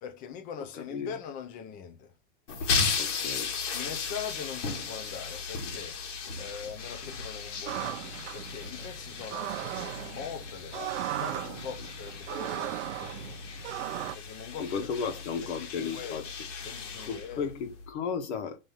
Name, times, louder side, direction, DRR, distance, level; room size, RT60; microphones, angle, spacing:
voice 1, 0.0-2.1 3.7-6.0 6.4-13.4 14.1-14.7 15.0-16.3 16.6-17.5, left 7 dB, 25° left, 0.6 m, -42 dB
voice 2, 0.7-1.1 3.0-3.5 14.6-16.2 17.0-18.7, left 6 dB, 65° left, 1.6 m, -34 dB
sound 1, 2.5-17.9, left 5 dB, 85° left, 2.1 m, -36 dB
sound 2, 7.7-14.2, right 13 dB, 70° right, 0.7 m, -37 dB
5.6 x 3.2 x 5.5 m
supercardioid pair, 160°, 37 cm